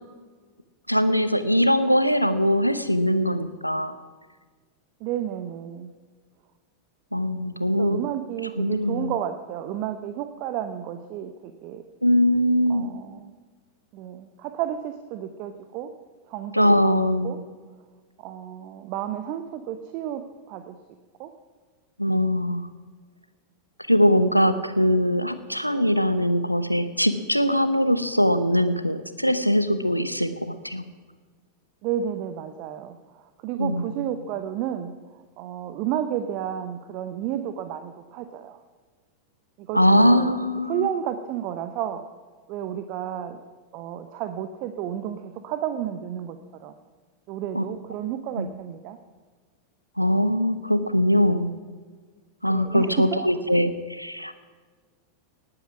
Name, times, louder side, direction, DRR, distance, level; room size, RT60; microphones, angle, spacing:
voice 1, 0.9-3.9 7.1-8.0 8.6-9.1 12.0-12.9 16.5-17.4 22.0-22.7 23.9-30.8 33.6-34.1 39.7-40.9 47.5-47.6 48.4-48.5 50.0-51.5 52.4-54.3, equal, 90° left, 11 dB, 0.8 m, -21 dB
voice 2, 5.0-5.9 7.8-11.3 11.6-11.8 12.7-13.3 13.9-15.9 16.3-16.9 17.2-17.4 18.2-20.2 20.5-20.8 21.2-21.3 31.8-34.9 35.4-38.6 39.6-40.3 40.7-42.0 42.5-43.4 43.7-46.7 47.3-49.0 52.5-53.1, right 10 dB, 45° right, 9 dB, 0.8 m, -31 dB
19.0 x 8.9 x 6.1 m, 1.5 s
figure-of-eight pair, 90°, 0 cm